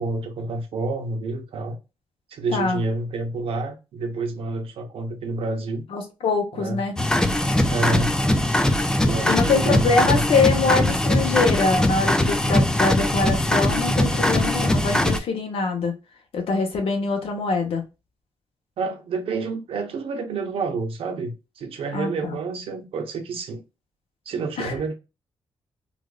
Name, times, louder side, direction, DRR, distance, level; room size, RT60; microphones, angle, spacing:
voice 1, 0.0-1.8 2.3-5.8 6.5-6.8 7.7-8.2 9.0-10.3 18.8-23.6 24.3-24.9, right 3 dB, 80° right, 0.8 m, -29 dB
voice 2, 2.5-2.8 5.9-7.0 9.2-15.9 16.3-17.8 21.9-22.1 24.6-24.7, left 4 dB, 80° left, 1.2 m, -23 dB
sound 1, 7.0-15.2, left 1 dB, 5° left, 0.3 m, -21 dB
3.9 x 2.5 x 2.3 m
wide cardioid pair, 165°, 10 cm